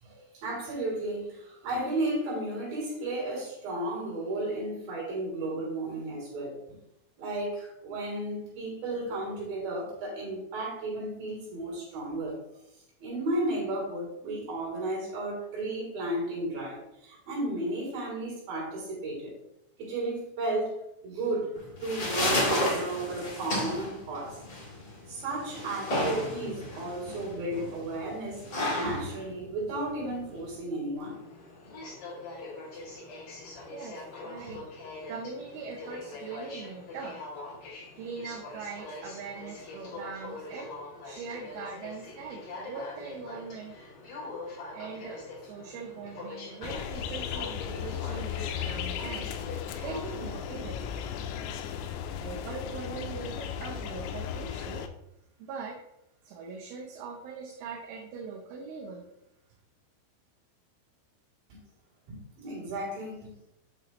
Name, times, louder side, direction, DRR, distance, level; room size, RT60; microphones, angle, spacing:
voice 1, 0.0-6.8 7.2-12.4 13.0-19.3 19.8-24.4 25.1-28.4 28.7-31.2 34.4-34.5 62.1-63.3, right 1 dB, 50° right, -3 dB, 4.7 m, -34 dB
sound 1, 21.5-30.5, left 1 dB, 70° left, 0.9 m, -32 dB
Aircraft, 31.0-50.4, left 2 dB, 50° left, 3.6 m, -43 dB
voice 2, 33.7-34.6 35.1-37.2 38.0-43.7 44.7-51.0 52.2-54.9 55.4-55.8 56.2-59.0, right 5 dB, 80° right, 1 dB, 3.1 m, -41 dB
sound 2, 46.6-54.9, left 8 dB, 90° left, 3.4 m, -36 dB
8.7 x 6.3 x 3.0 m, 0.82 s
omnidirectional pair, 5.9 m